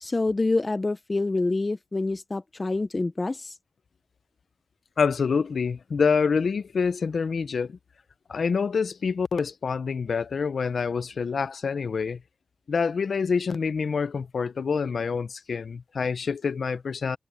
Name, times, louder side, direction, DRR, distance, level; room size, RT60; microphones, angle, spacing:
voice 1, 0.0-3.6, left 2 dB, 40° left, 0.6 m, -27 dB
voice 2, 5.0-7.8 8.3-12.2 12.7-17.2, left 5 dB, 85° left, 0.6 m, -26 dB
cardioid pair, 55°, 0 cm